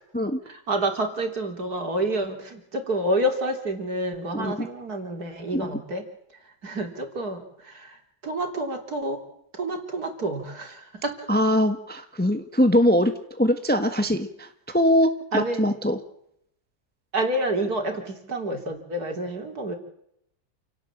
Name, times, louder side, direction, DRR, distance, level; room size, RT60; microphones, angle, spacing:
voice 1, 0.5-6.0 6.6-7.9 8.2-9.2 9.5-11.2 15.3-15.6 17.1-19.8, right 1 dB, 65° right, 4 dB, 3.9 m, -28 dB
voice 2, 4.3-4.7 5.5-5.7 11.3-13.1 13.4-14.5 14.7-16.0, equal, 5° left, 7 dB, 1.4 m, -22 dB
28.5 x 18.0 x 7.5 m, 0.74 s
omnidirectional pair, 1.8 m